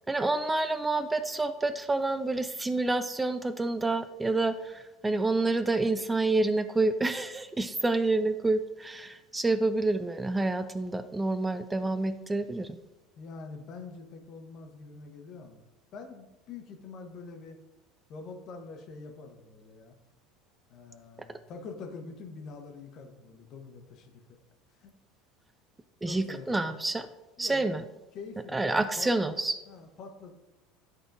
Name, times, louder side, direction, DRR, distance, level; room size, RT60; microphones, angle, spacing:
voice 1, 0.1-12.8 26.0-27.1 27.4-27.8 28.5-29.6, right 2 dB, 15° right, 11 dB, 0.3 m, -28 dB
voice 2, 13.2-15.7 15.9-17.6 18.1-20.0 20.7-24.2 24.8-24.9 26.0-26.6 27.4-27.7 28.1-29.1 29.7-30.3, left 4 dB, 50° left, 4 dB, 1.1 m, -45 dB
10.5 x 4.2 x 2.6 m, 1.0 s
hypercardioid pair, 75°, 0 cm